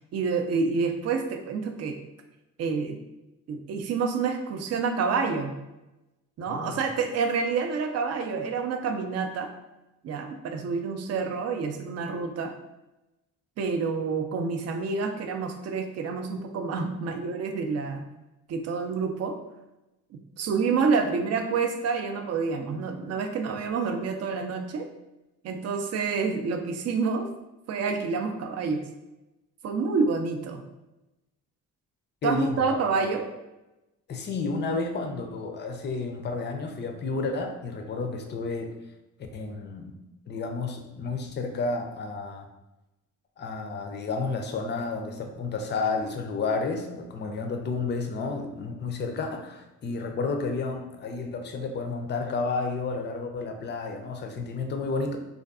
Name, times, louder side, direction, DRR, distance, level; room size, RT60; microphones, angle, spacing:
voice 1, 0.1-2.0 2.6-3.0 3.5-5.5 6.4-9.5 10.0-12.5 13.6-18.0 18.5-19.4 20.1-24.9 25.4-27.3 27.7-28.8 29.6-30.6 32.2-33.3, right 5 dB, 45° right, 5 dB, 0.4 m, -28 dB
voice 2, 6.5-6.8 32.2-32.8 34.1-38.7 39.3-39.9 40.3-42.5 43.4-55.2, left 3 dB, 30° left, 4 dB, 0.4 m, -31 dB
2.5 x 2.3 x 2.3 m, 0.98 s
supercardioid pair, 65°, 35 cm